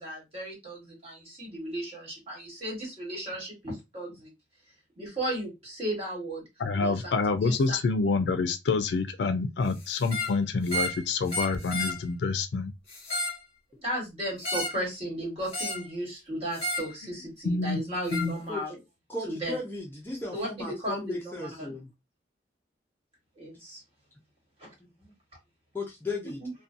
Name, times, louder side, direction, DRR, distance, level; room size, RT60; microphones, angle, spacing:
voice 1, 0.0-4.3 5.0-6.4 6.7-7.1 7.4-7.6 13.8-18.8 19.3-19.6 20.3-21.8 23.4-23.8 24.6-24.7 26.4-26.5, right 1 dB, 35° right, 1.4 m, -35 dB
voice 2, 6.6-12.7 17.4-17.8 18.1-18.3, left 4 dB, 75° left, 0.4 m, -27 dB
sound 1, 10.0-10.3 10.7-11.0 11.3-12.0 12.9-13.4 14.4-14.8 15.5-15.9 16.5-16.9 18.1-18.3, left 1 dB, 35° left, 1.1 m, -32 dB
voice 3, 19.1-21.9 25.7-26.4, left 2 dB, 10° left, 0.5 m, -35 dB
2.6 x 2.1 x 2.5 m
head